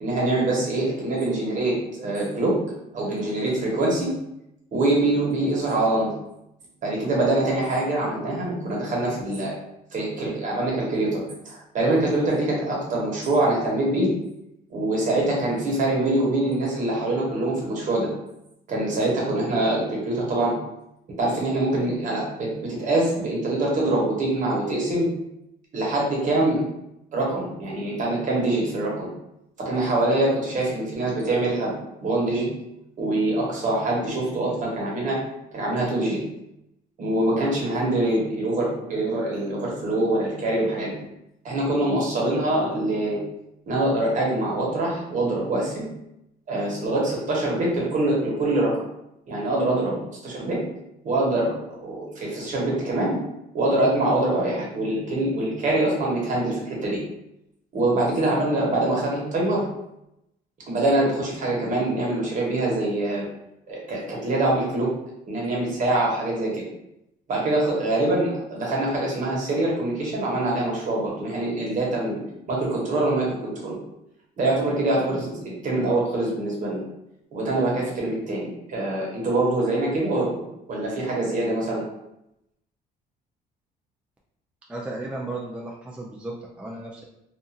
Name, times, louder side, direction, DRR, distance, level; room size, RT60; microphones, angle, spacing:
voice 1, 0.0-2.6 2.9-4.1 4.7-6.1 6.8-9.5 9.9-14.1 14.7-18.1 18.7-20.6 21.2-25.1 25.7-26.6 27.1-29.1 29.6-31.7 32.0-32.5 33.0-35.2 35.5-36.2 37.0-40.9 41.4-43.2 43.7-45.9 46.5-48.8 49.3-50.0 50.2-50.6 51.0-53.2 53.5-57.0 57.7-59.7 60.7-63.3 63.7-64.9 65.3-66.6 67.3-72.2 72.5-73.8 74.4-76.8 77.3-81.8, right 2 dB, 50° right, -3 dB, 1.1 m, -24 dB
voice 2, 84.7-87.0, right 2 dB, 5° right, -3 dB, 0.3 m, -34 dB
2.5 x 2.4 x 2.7 m, 0.84 s
cardioid pair, 110°, 17 cm